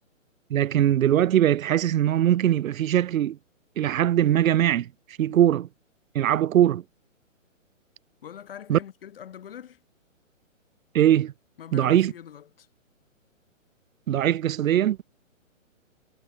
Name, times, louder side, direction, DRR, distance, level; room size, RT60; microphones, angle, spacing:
voice 1, 0.5-3.4 3.8-4.9 5.2-5.7 6.1-6.8 8.7-8.8 10.9-11.3 11.7-12.1 14.1-15.0, right 11 dB, 80° right, 0.5 m, -21 dB
voice 2, 8.2-9.8 11.6-12.7, left 9 dB, 45° left, 4.4 m, -43 dB
hypercardioid pair, 165°, 40 cm